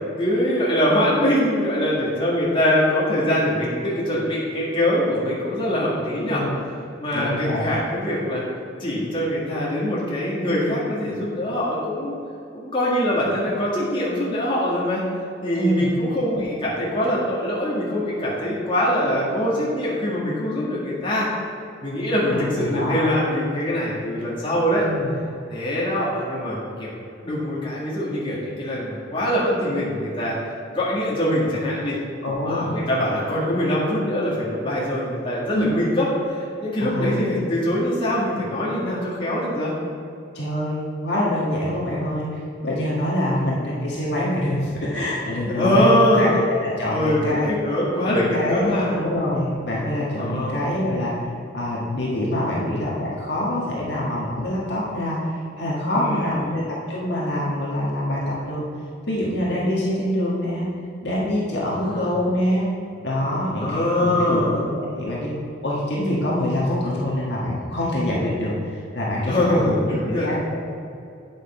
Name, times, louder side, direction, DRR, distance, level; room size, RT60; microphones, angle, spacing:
voice 1, 0.2-6.5 7.0-8.4 8.8-12.1 12.5-15.0 15.4-21.3 21.8-24.9 25.5-26.9 27.2-30.4 30.7-32.0 32.4-39.7 43.3-43.5 45.5-46.3 46.9-48.9 50.2-50.6 55.9-56.6 61.8-62.1 63.6-64.6 69.3-70.3, equal, 25° left, -7 dB, 1.9 m, -23 dB
voice 2, 7.1-7.6 15.5-15.9 16.3-16.4 22.3-23.0 24.8-25.1 32.2-32.9 35.5-35.7 36.8-37.2 40.3-42.3 42.6-47.5 48.1-51.1 51.5-58.6 59.1-60.7 61.0-62.7 63.0-65.3 65.6-69.7 70.0-70.7, left 1 dB, 55° left, -6 dB, 1.6 m, -25 dB
8.6 x 6.4 x 4.4 m, 2.6 s
head